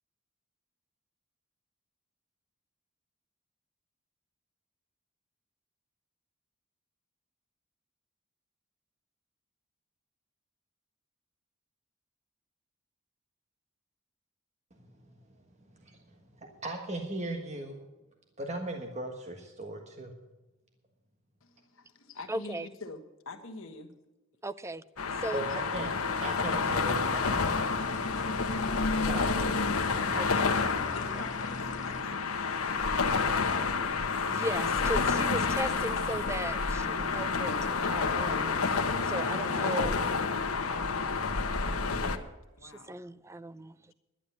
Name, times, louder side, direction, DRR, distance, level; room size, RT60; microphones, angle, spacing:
voice 1, 16.6-17.8 18.4-20.1 25.3-25.9 26.2-27.5 29.0-29.5, right 2 dB, 35° right, 1.4 m, -38 dB
voice 2, 21.4-23.9 25.5-25.6 30.9-33.5 42.6-43.0, left 3 dB, 65° left, 1.3 m, -46 dB
voice 3, 22.3-22.7 24.4-24.8 25.2-25.5 30.1-30.5 34.3-38.6 39.0-40.0 42.6-43.9, right 1 dB, 15° right, 0.4 m, -37 dB
sound 1, 25.0-42.2, left 4 dB, 85° left, 1.1 m, -29 dB
sound 2, 26.1-32.0, left 3 dB, 35° left, 0.8 m, -45 dB
11.5 x 10.0 x 6.8 m
head